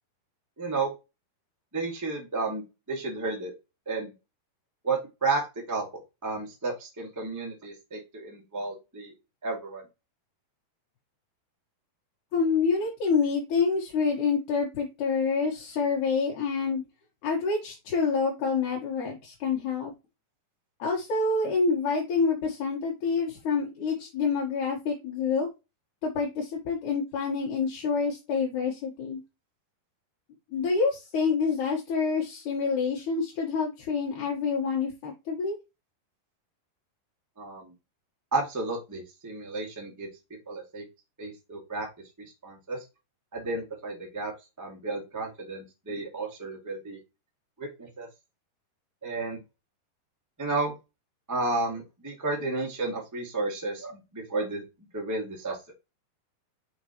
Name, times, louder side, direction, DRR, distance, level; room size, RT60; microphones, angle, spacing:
voice 1, 0.6-0.9 1.7-2.6 2.9-3.5 3.8-4.1 4.8-5.9 6.2-9.1 9.4-9.8 37.4-37.7 38.3-40.1 40.5-40.8 41.2-41.9 42.4-42.8 43.3-47.0 47.6-48.1 49.0-49.4 50.4-50.7 51.3-54.6 54.9-55.7, right 3 dB, 30° right, -1 dB, 0.3 m, -32 dB
voice 2, 12.3-16.8 17.2-19.9 20.8-25.5 26.0-29.2 30.5-35.6, left 5 dB, 60° left, -2 dB, 2.4 m, -27 dB
5.9 x 5.4 x 3.0 m, 0.25 s
omnidirectional pair, 4.8 m